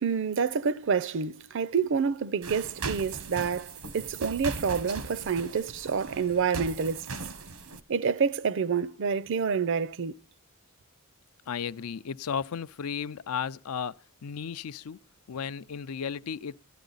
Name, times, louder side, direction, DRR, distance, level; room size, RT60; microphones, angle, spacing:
voice 1, 0.0-7.1 7.9-10.1, right 6 dB, 60° right, 0.5 m, -28 dB
sound 1, 2.4-7.8, right 4 dB, 85° right, 1.1 m, -39 dB
voice 2, 11.5-15.0 15.3-16.6, left 7 dB, 85° left, 0.5 m, -34 dB
12.5 x 11.5 x 4.0 m
head